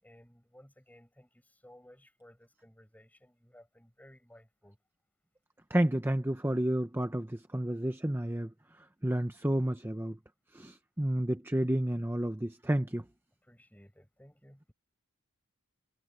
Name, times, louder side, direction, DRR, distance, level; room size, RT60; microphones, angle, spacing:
voice 1, 0.0-4.8 13.4-14.6, left 1 dB, 5° left, 7.5 m, -58 dB
voice 2, 5.7-10.2 10.5-13.0, right 1 dB, 10° right, 0.8 m, -31 dB
head